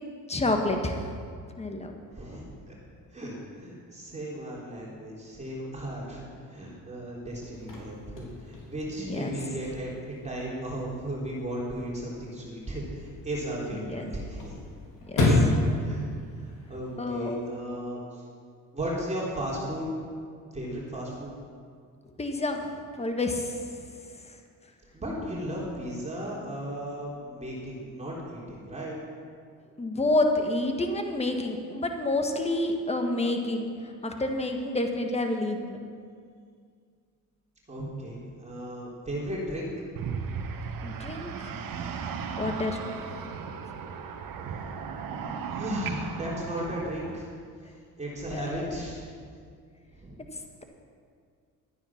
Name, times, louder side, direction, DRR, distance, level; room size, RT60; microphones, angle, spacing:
voice 1, 0.3-1.1 1.6-1.9 9.0-9.3 13.7-14.1 15.1-15.6 17.0-17.4 22.2-23.7 24.2-24.4 29.8-35.8 40.8-41.6 42.4-43.1 48.3-48.8, left 2 dB, 15° left, 4 dB, 1.6 m, -29 dB
voice 2, 2.1-2.7 3.1-14.6 15.8-16.1 16.4-18.2 18.7-19.9 20.5-21.3 24.9-29.0 37.7-39.7 45.5-47.3 48.0-49.0 49.9-50.2, right 1 dB, 20° right, -5 dB, 3.6 m, -35 dB
Chirp tweet / Car / Slam, 7.3-17.3, left 2 dB, 60° left, 3.7 m, -32 dB
sound 1, 40.0-47.2, right 6 dB, 70° right, 1.3 m, -36 dB
13.0 x 9.4 x 5.9 m, 2.1 s
supercardioid pair, 80°, 36 cm